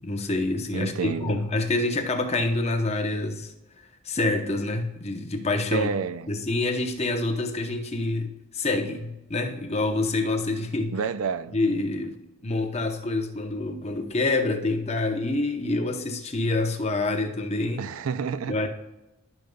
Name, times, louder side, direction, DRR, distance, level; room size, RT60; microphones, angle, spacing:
voice 1, 0.0-3.5 4.0-5.9 6.3-10.9 11.5-17.8 18.5-18.7, left 2 dB, 30° left, 0.8 m, -27 dB
voice 2, 0.7-1.4 5.7-6.3 10.9-11.5 17.8-18.7, right 6 dB, 70° right, 0.4 m, -29 dB
13.5 x 5.3 x 2.3 m
head